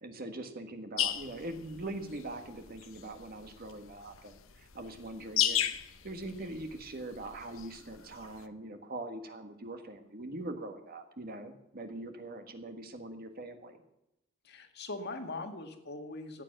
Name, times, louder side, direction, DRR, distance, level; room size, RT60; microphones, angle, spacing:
voice 1, 0.0-5.7 6.0-13.8, right 2 dB, 45° right, 6 dB, 1.6 m, -42 dB
sound 1, 1.0-8.4, left 11 dB, 70° left, 0.9 m, -36 dB
voice 2, 14.4-16.4, left 2 dB, 55° left, 6 dB, 1.9 m, -41 dB
15.0 x 9.3 x 6.6 m, 0.87 s
head